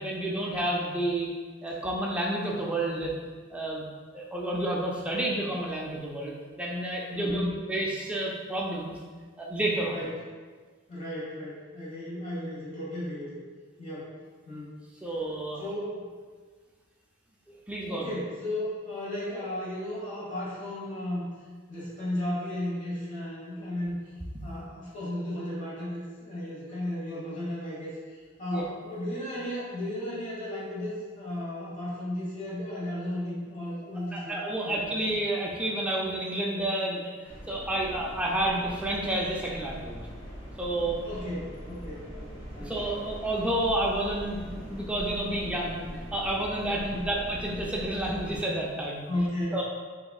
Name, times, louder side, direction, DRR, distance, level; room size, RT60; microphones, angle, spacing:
voice 1, 0.0-1.3 1.6-3.2 3.5-3.8 4.1-9.0 9.4-10.0 15.0-15.6 17.7-18.1 28.5-28.7 34.1-37.1 37.5-40.0 40.6-41.0 42.6-45.8 46.1-49.1 49.5-49.6, right 1 dB, 5° right, -3 dB, 0.4 m, -30 dB
voice 2, 7.1-7.6 9.9-10.1 10.9-13.4 13.8-14.1 14.4-14.7 15.6-16.0 17.9-21.3 21.7-24.1 24.4-34.3 34.6-34.9 41.0-41.4 41.7-43.0 46.9-47.1 49.1-49.6, left 1 dB, 40° left, -8 dB, 1.2 m, -34 dB
sound 1, 37.2-48.4, equal, 75° left, 1.3 m, -42 dB
4.0 x 3.5 x 2.3 m, 1.5 s
head